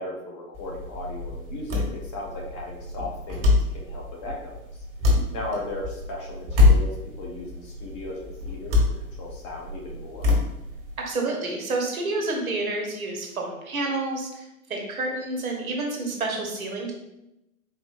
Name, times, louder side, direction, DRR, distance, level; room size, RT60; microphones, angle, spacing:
voice 1, 0.0-4.8 5.3-8.9 9.2-10.3, left 1 dB, 20° left, -2 dB, 0.4 m, -37 dB
sound 1, 0.5-11.0, left 3 dB, 40° right, 1.4 m, -25 dB
voice 2, 11.0-14.4 14.7-16.9, right 2 dB, 75° right, 0 dB, 1.1 m, -29 dB
4.6 x 3.1 x 2.5 m, 0.90 s
figure-of-eight pair, 105°, 43 cm